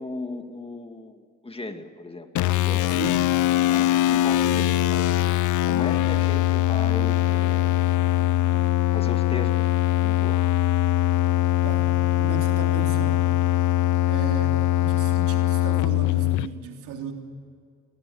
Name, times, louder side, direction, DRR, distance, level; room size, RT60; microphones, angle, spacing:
voice 1, 0.0-2.3 2.5-2.8 3.7-7.8 8.9-9.7 10.0-10.5, left 2 dB, 20° left, 6 dB, 2.2 m, -37 dB
sound 1, 2.4-16.5, left 13 dB, 75° left, 0.7 m, -22 dB
voice 2, 2.9-3.3 11.6-11.9 12.2-13.5 14.1-17.1, right 5 dB, 85° right, 3 dB, 3.3 m, -36 dB
23.0 x 19.0 x 7.0 m, 2.2 s
cardioid pair, 90°, 30 cm